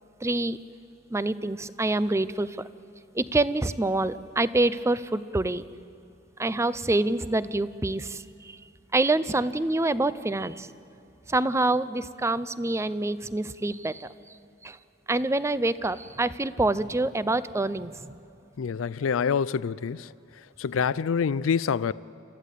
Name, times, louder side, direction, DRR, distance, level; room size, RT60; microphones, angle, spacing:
voice 1, 0.2-0.6 1.1-2.7 3.1-5.6 6.4-8.6 8.9-10.7 11.3-14.1 14.6-14.8 15.1-18.1, right 2 dB, 15° right, 0.5 m, -26 dB
voice 2, 18.6-20.1 20.6-21.9, left 6 dB, 90° left, 0.4 m, -26 dB
30.0 x 14.5 x 8.3 m
head